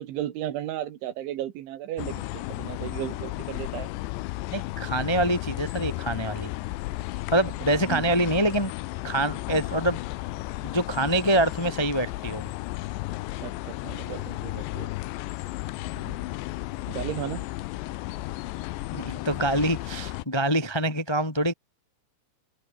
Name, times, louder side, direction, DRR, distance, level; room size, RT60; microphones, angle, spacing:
voice 1, 0.0-3.9 7.9-8.1 13.4-14.9 16.0-16.3 16.9-17.4, right 12 dB, 90° right, 4.3 m, -35 dB
sound 1, 2.0-20.2, left 18 dB, 85° left, 3.1 m, -34 dB
voice 2, 4.5-6.5 7.3-8.7 9.0-10.0 10.6-12.4 18.9-21.5, right 1 dB, 30° left, 0.4 m, -25 dB
omnidirectional pair, 5.2 m